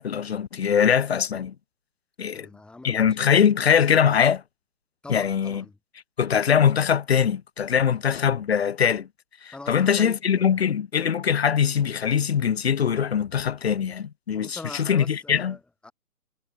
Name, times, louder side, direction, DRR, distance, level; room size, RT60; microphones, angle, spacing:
voice 1, 0.0-1.5 2.2-2.5 2.8-4.4 5.1-5.6 6.2-9.1 9.4-15.6, left 7 dB, 45° left, 0.7 m, -22 dB
voice 2, 2.2-3.3 5.0-5.8 9.5-10.6 14.3-15.9, left 2 dB, ahead, 1.6 m, -42 dB
figure-of-eight pair, 145°, 46 cm